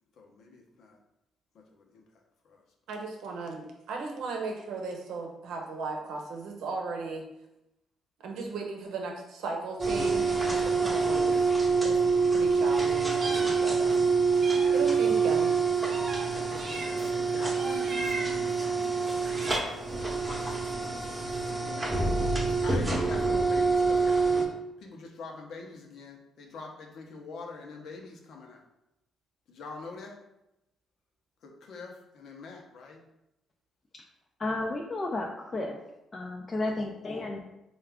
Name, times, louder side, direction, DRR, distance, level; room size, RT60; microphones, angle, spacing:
voice 1, 0.2-1.0 1.5-2.0 2.4-2.6 11.1-11.5 14.5-14.8 16.3-18.7 19.1-19.7 21.4-22.0 22.6-24.5 24.8-28.6 29.5-30.2 31.4-33.0, left 3 dB, 70° left, 1 dB, 0.8 m, -45 dB
voice 2, 2.9-7.3 8.2-11.4 11.8-12.1 12.3-14.1 14.7-15.6, right 4 dB, 80° right, 2 dB, 0.8 m, -36 dB
sound 1, 9.8-24.5, right 4 dB, 15° right, 0.9 m, -26 dB
Meow, 12.7-14.0 14.4-17.2 17.5-18.5 19.1-19.9, right 2 dB, 45° right, 0.7 m, -40 dB
voice 3, 34.4-35.8 36.1-37.4, left 2 dB, 30° left, 0 dB, 0.4 m, -32 dB
4.5 x 2.4 x 3.5 m, 0.89 s
cardioid pair, 90°, 0 cm